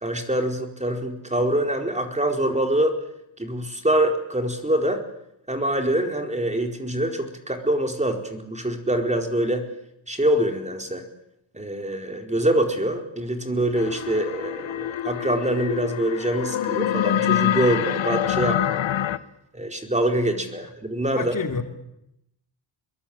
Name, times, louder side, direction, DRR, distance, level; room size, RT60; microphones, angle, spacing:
voice 1, 0.0-3.0 3.4-5.0 5.5-9.7 10.1-11.0 11.5-18.8 19.5-21.3, right 1 dB, 15° right, 4 dB, 4.4 m, -24 dB
sound 1, 13.8-19.2, left 10 dB, 70° left, 1.4 m, -25 dB
voice 2, 21.1-21.6, left 5 dB, 40° left, 4 dB, 3.2 m, -29 dB
26.5 x 22.0 x 8.8 m, 0.82 s
cardioid pair, 85°, 47 cm